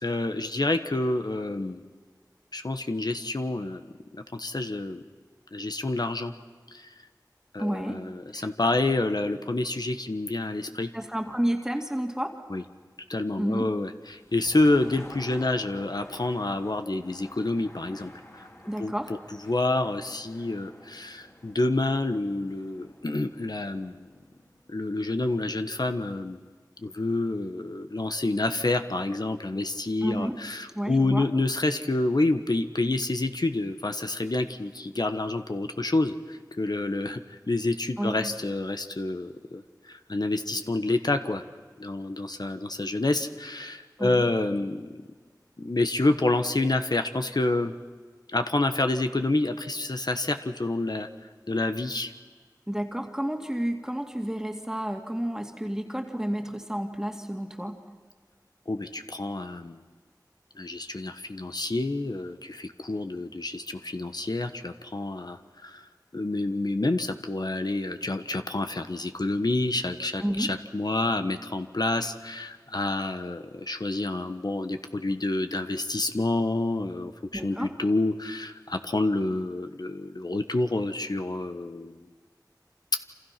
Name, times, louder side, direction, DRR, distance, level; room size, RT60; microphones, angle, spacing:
voice 1, 0.0-1.8 2.5-3.8 4.1-5.0 5.5-6.3 6.7-6.9 7.5-10.9 12.5-12.6 13.1-18.5 18.8-19.2 19.4-24.0 24.7-26.4 26.8-41.4 41.8-45.0 45.6-47.7 48.3-51.1 51.5-52.1 58.7-59.8 60.6-65.8 66.1-82.0, left 2 dB, 65° left, 8 dB, 1.3 m, -28 dB
voice 2, 7.6-8.0 10.9-12.4 13.4-13.7 18.7-19.1 30.0-30.4 30.7-31.3 38.0-38.2 44.0-44.3 52.7-57.8 70.2-70.6 77.3-77.7, equal, 5° right, 3 dB, 2.3 m, -30 dB
sound 1, 14.0-25.9, left 1 dB, 40° left, 4.2 m, -51 dB
28.5 x 26.5 x 5.9 m, 1.5 s
wide cardioid pair, 50°, 7 cm